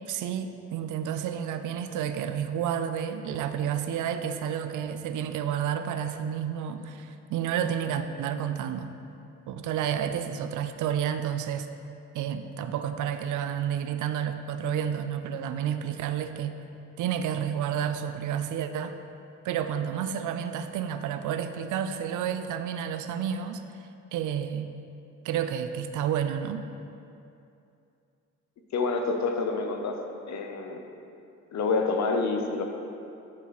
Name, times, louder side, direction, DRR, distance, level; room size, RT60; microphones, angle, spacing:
voice 1, 0.1-8.9 9.5-11.7 12.1-16.6 17.0-19.0 19.4-23.6 24.1-24.7 25.2-26.6, right 9 dB, 80° right, 9 dB, 0.6 m, -30 dB
voice 2, 28.7-30.0 30.3-30.9 31.5-32.6, left 4 dB, 65° left, 4 dB, 1.0 m, -27 dB
9.9 x 4.0 x 5.9 m, 2.7 s
cardioid pair, 90°, 30 cm